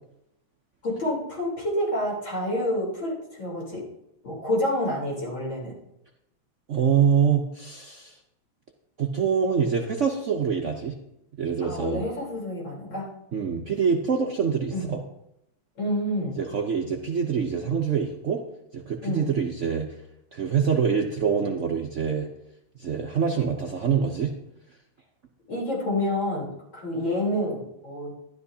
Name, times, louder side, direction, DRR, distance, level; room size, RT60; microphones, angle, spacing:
voice 1, 0.8-3.8 4.2-5.7 11.6-13.1 14.7-14.9 15.8-16.4 19.0-19.3 25.5-28.1, left 1 dB, 60° left, -5 dB, 4.4 m, -28 dB
voice 2, 6.7-8.2 9.0-11.0 11.4-12.0 13.3-15.0 16.4-18.4 18.7-19.9 20.3-22.3 22.8-24.3, right 6 dB, 70° right, 2 dB, 0.7 m, -25 dB
12.5 x 11.5 x 2.8 m, 0.84 s
omnidirectional pair, 2.3 m